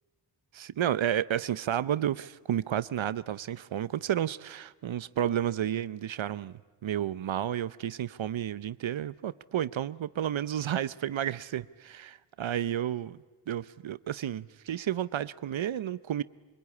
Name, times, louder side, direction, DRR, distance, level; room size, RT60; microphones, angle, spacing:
voice 1, 0.5-13.2 13.5-16.2, right 10 dB, 65° right, 0.7 m, -31 dB
25.0 x 21.5 x 9.6 m
wide cardioid pair, 90°, 50 cm